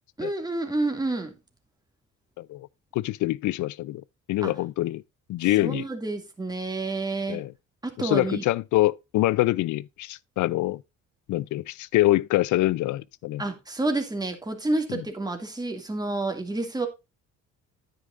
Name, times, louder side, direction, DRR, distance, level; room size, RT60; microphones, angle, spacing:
voice 1, 0.2-1.3 4.4-4.5 5.6-7.4 7.8-8.4 13.4-16.9, right 2 dB, 15° right, 2.3 m, -29 dB
voice 2, 2.4-2.7 2.9-4.0 4.3-5.0 5.3-5.8 7.3-7.5 8.0-10.8 11.3-13.4 14.9-15.0, left 17 dB, 75° left, 0.5 m, -25 dB
9.8 x 9.1 x 2.5 m
cardioid pair, 90°, 30 cm